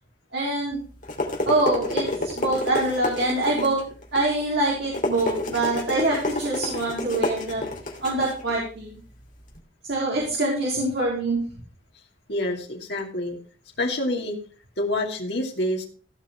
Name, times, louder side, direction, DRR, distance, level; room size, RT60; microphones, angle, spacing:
voice 1, 0.3-0.8 1.5-3.8 4.1-7.6 8.0-9.0 9.8-11.4, right 2 dB, 55° right, -4 dB, 4.0 m, -25 dB
sound 1, 0.7-9.6, left 2 dB, 40° left, 2.9 m, -30 dB
voice 2, 12.3-13.4 13.8-14.4 14.8-15.9, left 1 dB, 55° left, 1 dB, 2.7 m, -27 dB
16.0 x 5.8 x 5.9 m, 0.40 s
head